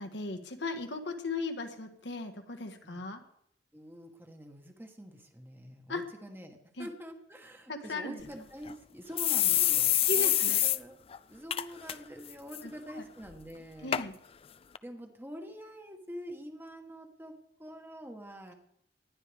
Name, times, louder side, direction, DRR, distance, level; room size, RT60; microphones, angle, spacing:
voice 1, 0.0-3.2 5.9-6.0 6.8-6.9 7.7-8.2 10.1-10.6 12.6-13.1 13.8-14.1, left 2 dB, 80° left, 6 dB, 1.6 m, -37 dB
voice 2, 3.7-10.3 10.6-11.0 11.3-14.0 14.8-18.5, equal, 10° right, 4 dB, 1.4 m, -46 dB
sound 1, 8.2-8.3 8.7-8.8 9.2-10.8 11.1-11.2 11.5-11.9 12.3-12.6 13.3-13.4 13.9-14.0 14.8-14.9, left 12 dB, 30° left, 0.4 m, -26 dB
19.5 x 12.0 x 3.5 m, 0.73 s
head